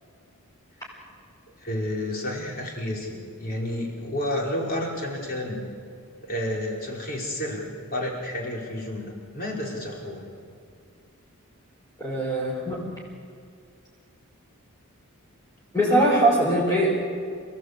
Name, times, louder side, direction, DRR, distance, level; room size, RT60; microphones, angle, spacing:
voice 1, 1.6-5.6 6.2-7.6 7.9-10.3, left 1 dB, 45° left, -2 dB, 5.2 m, -30 dB
voice 2, 12.0-12.8 15.7-16.9, right 1 dB, 15° left, -6 dB, 5.4 m, -21 dB
30.0 x 16.5 x 8.4 m, 2.2 s
head